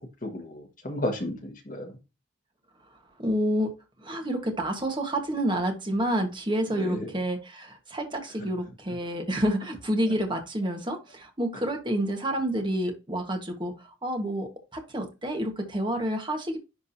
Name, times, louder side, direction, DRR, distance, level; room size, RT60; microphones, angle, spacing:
voice 1, 0.2-2.0 6.8-7.1, left 1 dB, 45° left, 2 dB, 1.7 m, -33 dB
voice 2, 3.2-3.7 4.0-16.6, right 1 dB, 25° right, 3 dB, 1.4 m, -29 dB
11.0 x 3.6 x 2.8 m, 0.27 s
head